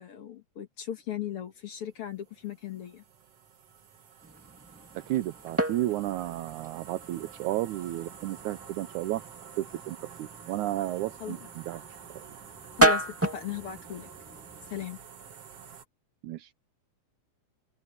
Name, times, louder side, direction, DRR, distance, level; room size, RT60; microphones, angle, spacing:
voice 1, 0.0-3.0 11.2-11.5 12.8-14.1 14.7-15.0, left 10 dB, 55° left, 1.8 m, -37 dB
sound 1, 1.4-15.8, right 7 dB, 55° right, 2.6 m, -49 dB
sound 2, 4.2-14.9, right 1 dB, 5° right, 1.3 m, -33 dB
voice 2, 5.0-9.2 9.6-11.4 11.7-11.8 12.2-12.3 16.2-16.7, right 15 dB, 80° right, 2.1 m, -32 dB
open air
omnidirectional pair, 3.6 m